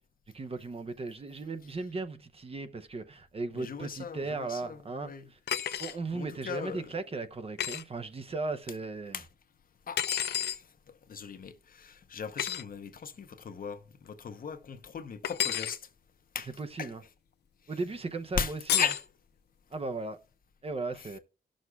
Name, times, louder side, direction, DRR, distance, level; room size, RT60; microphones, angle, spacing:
voice 1, 0.3-5.4 5.8-9.2 16.6-17.0 17.7-18.9 19.7-20.2 20.6-21.2, right 3 dB, 35° right, 0.6 m, -36 dB
voice 2, 3.5-6.9 9.1-9.3 9.9-15.9 16.3-16.5 16.8-16.9 18.4-19.0 20.9-21.1, left 6 dB, 60° left, 0.8 m, -38 dB
sound 1, 5.5-6.0 7.6-7.8 10.0-10.6 12.4-12.6 15.2-15.8 18.7-19.1, left 10 dB, 85° left, 0.5 m, -30 dB
18.0 x 6.3 x 2.3 m
wide cardioid pair, 105°, 17 cm